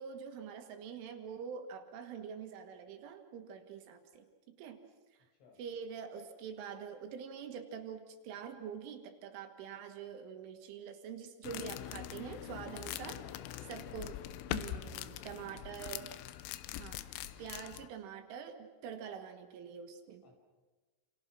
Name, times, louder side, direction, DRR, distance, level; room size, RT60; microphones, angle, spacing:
voice 1, 0.0-4.8 5.1-5.2 5.6-13.2 13.7-14.2 14.5-16.1 16.7-20.2, right 7 dB, 70° right, 6 dB, 4.0 m, -45 dB
sound 1, 11.4-17.9, left 13 dB, 85° left, 3.7 m, -43 dB
voice 2, 11.4-15.6 17.1-17.7 20.2-20.4, left 3 dB, 60° left, 1 dB, 8.1 m, -62 dB
29.0 x 28.5 x 6.1 m, 1.3 s
omnidirectional pair, 6.0 m